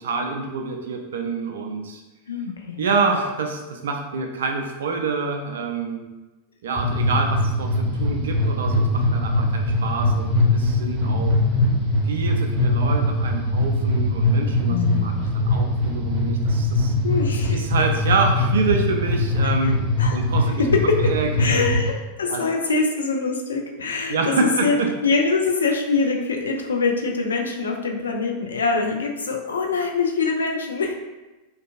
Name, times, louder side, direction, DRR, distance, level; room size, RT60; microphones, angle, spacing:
voice 1, 0.0-2.0 2.8-6.1 6.6-11.3 12.0-16.9 17.5-19.8 20.1-20.6 21.0-21.7 22.3-22.4 24.1-24.9, right 4 dB, 60° right, 3 dB, 0.4 m, -27 dB
voice 2, 2.3-2.9 14.7-15.2 17.0-17.6 19.4-19.5 20.0-20.2 20.6-21.0 21.4-31.0, left 4 dB, 70° left, 2 dB, 0.3 m, -24 dB
sound 1, 6.8-21.9, left 1 dB, 20° right, 0.8 m, -22 dB
2.6 x 2.3 x 2.4 m, 1.1 s
figure-of-eight pair, 90°, 0 cm